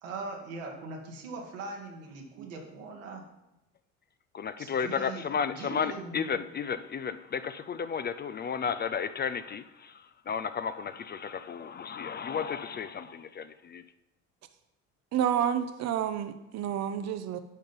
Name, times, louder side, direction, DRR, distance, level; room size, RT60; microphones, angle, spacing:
voice 1, 0.0-3.2 4.6-5.2 5.6-6.3, right 3 dB, 80° right, 0 dB, 1.8 m, -40 dB
voice 2, 4.3-13.8, left 6 dB, 25° left, 11 dB, 0.4 m, -33 dB
voice 3, 15.1-17.4, right 9 dB, 45° right, 10 dB, 0.7 m, -29 dB
10.5 x 3.8 x 5.4 m, 0.92 s
hypercardioid pair, 65°, 38 cm